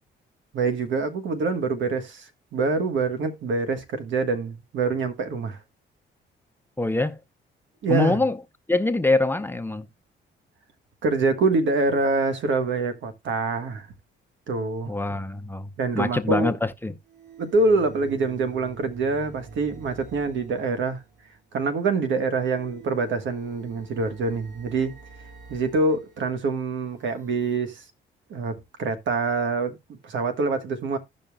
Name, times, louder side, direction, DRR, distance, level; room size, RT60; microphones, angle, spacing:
voice 1, 0.5-5.6 7.8-8.2 11.0-13.9 14.5-14.9 15.8-16.6 17.4-21.0 21.5-25.0 25.5-27.8 28.3-31.0, right 3 dB, 70° right, 1.4 m, -25 dB
voice 2, 6.8-7.2 7.9-8.4 8.7-9.9 14.9-15.7 15.9-16.9, left 2 dB, 10° left, 0.7 m, -24 dB
sound 1, 14.8-14.9 17.0-21.5 22.3-27.6, right 4 dB, 50° right, 5.8 m, -47 dB
15.5 x 5.3 x 2.3 m
cardioid pair, 90°, 20 cm